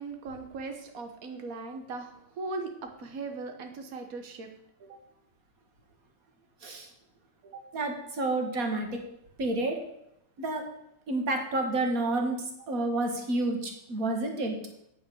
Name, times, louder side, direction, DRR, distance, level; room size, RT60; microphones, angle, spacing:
voice 1, 0.0-2.7 3.0-4.5 4.8-5.0 7.4-7.6, right 3 dB, 80° right, 5 dB, 0.7 m, -39 dB
voice 2, 7.7-9.0 9.4-9.8 10.4-10.6 11.1-14.6, right 2 dB, 35° right, 3 dB, 1.8 m, -29 dB
9.1 x 8.6 x 7.0 m, 0.79 s
omnidirectional pair, 3.3 m